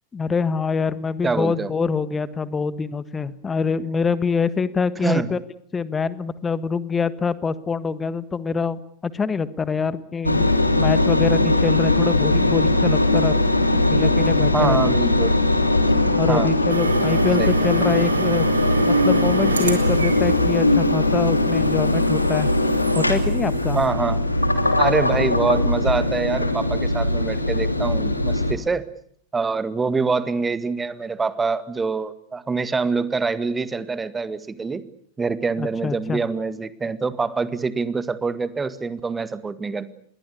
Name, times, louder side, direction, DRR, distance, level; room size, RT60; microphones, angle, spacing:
voice 1, 0.1-5.4 5.7-10.5 10.8-13.4 13.9-14.8 16.1-18.5 18.8-22.5 22.9-23.8 35.6-36.2, left 5 dB, 15° left, 16 dB, 1.5 m, -25 dB
voice 2, 1.2-1.7 5.0-5.3 14.5-15.3 16.3-16.5 17.4-17.5 23.7-24.2 24.8-28.8 29.3-34.8 35.2-39.9, right 4 dB, 15° right, 14 dB, 1.8 m, -25 dB
Engine, 10.2-28.5, left 2 dB, 85° left, 3.0 m, -20 dB
sound 1, 16.7-23.9, right 5 dB, 75° right, 3.8 m, -31 dB
27.5 x 22.0 x 8.4 m, 0.64 s
figure-of-eight pair, 90°, 0 cm